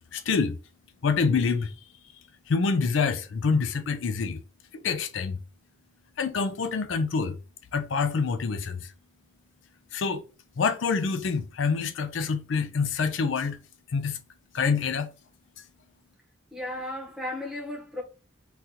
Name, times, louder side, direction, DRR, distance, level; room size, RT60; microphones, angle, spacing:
voice 1, 0.1-0.6 1.0-1.7 2.5-4.4 4.7-5.4 6.2-7.4 7.7-8.9 9.9-10.2 10.6-13.6 13.9-14.2 14.5-15.1, left 5 dB, 75° left, 0.4 m, -26 dB
voice 2, 16.5-18.0, left 1 dB, ahead, 0.9 m, -34 dB
3.9 x 2.5 x 2.8 m
head